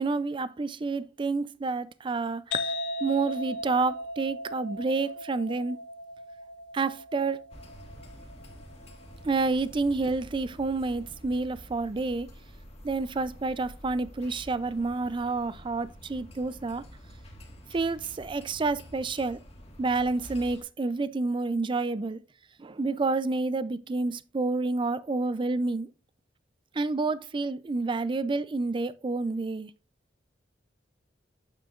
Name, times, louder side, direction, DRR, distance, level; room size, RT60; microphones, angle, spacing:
voice 1, 0.0-2.7 3.0-5.8 6.7-7.4 9.2-12.3 12.8-16.8 17.7-19.4 19.8-22.2 22.6-25.9 26.7-29.7, right 3 dB, 25° right, 0.4 m, -29 dB
sound 1, 2.5-9.9, left 1 dB, 70° left, 0.7 m, -38 dB
sound 2, 7.5-20.6, equal, 35° left, 1.7 m, -48 dB
8.8 x 6.9 x 2.4 m
head